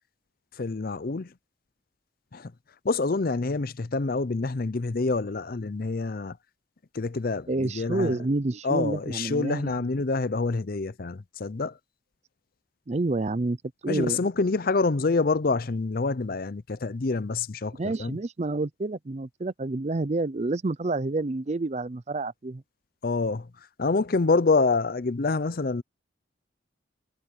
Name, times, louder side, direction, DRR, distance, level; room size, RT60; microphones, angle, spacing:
voice 1, 0.6-1.3 2.3-2.5 2.8-6.4 6.9-8.2 8.6-11.7 13.9-18.2 23.0-23.5 23.8-25.8, left 3 dB, 45° left, 0.6 m, -26 dB
voice 2, 7.5-9.9 12.9-13.6 13.8-14.2 17.8-22.6, right 2 dB, 35° right, 0.5 m, -29 dB
head